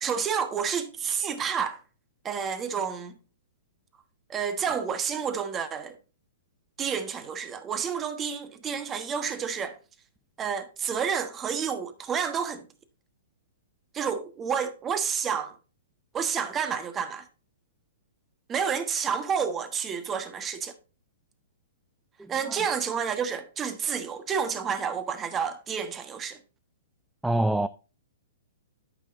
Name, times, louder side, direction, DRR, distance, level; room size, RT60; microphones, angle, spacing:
voice 1, 0.0-1.8 2.2-3.1 4.3-5.9 6.8-9.8 10.4-12.6 13.9-15.5 16.1-17.2 18.5-20.7 22.3-26.4, right 7 dB, 20° right, 1.2 m, -30 dB
voice 2, 27.2-27.7, right 1 dB, 5° right, 0.3 m, -24 dB
13.0 x 5.7 x 2.5 m
hypercardioid pair, 130°, 0 cm